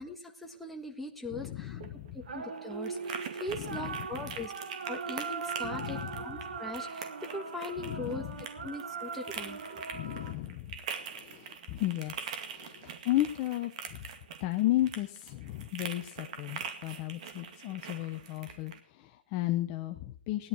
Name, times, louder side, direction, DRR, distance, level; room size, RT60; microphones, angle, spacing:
voice 1, 0.0-1.8 2.1-4.5 4.9-8.2 8.6-9.8, left 1 dB, ahead, 1 dB, 1.6 m, -40 dB
voice 2, 1.3-2.3 3.5-4.5 5.6-6.4 7.8-8.7 9.9-14.0 14.4-20.5, left 15 dB, 25° left, 5 dB, 0.9 m, -35 dB
sound 1, 1.6-18.8, right 6 dB, 40° right, 2.1 m, -44 dB
sound 2, 2.3-10.3, right 5 dB, 70° right, 2.3 m, -40 dB
17.5 x 11.5 x 4.7 m, 0.43 s
hypercardioid pair, 150°, 6 cm